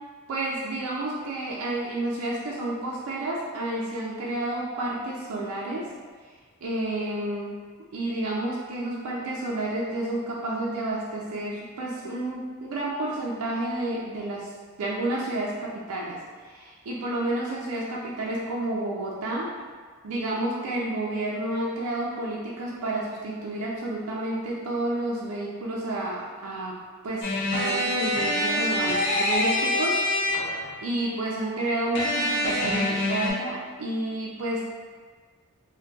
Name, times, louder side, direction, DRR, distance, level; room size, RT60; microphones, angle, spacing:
voice 1, 0.3-5.9 6.6-7.6 7.9-14.5 14.8-16.2 16.5-19.5 20.0-26.8 27.0-30.5 30.8-34.7, right 1 dB, 85° right, -5 dB, 0.4 m, -30 dB
sound 1, 27.2-30.7 31.9-33.3, left 1 dB, 55° left, 0.6 m, -25 dB
3.8 x 2.2 x 2.3 m, 1.5 s
head